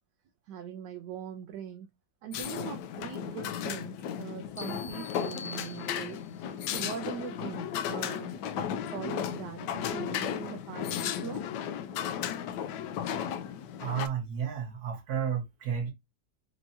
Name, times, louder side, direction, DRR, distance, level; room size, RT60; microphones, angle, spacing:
voice 1, 0.5-1.9 2.2-11.4, right 8 dB, 75° right, 1.2 m, -41 dB
sound 1, 2.3-14.1, left 9 dB, 75° left, 1.1 m, -35 dB
sound 2, 4.6-6.4, left 5 dB, 20° left, 0.5 m, -45 dB
voice 2, 13.8-15.9, right 8 dB, 55° right, 1.5 m, -32 dB
4.5 x 2.8 x 2.6 m
omnidirectional pair, 2.0 m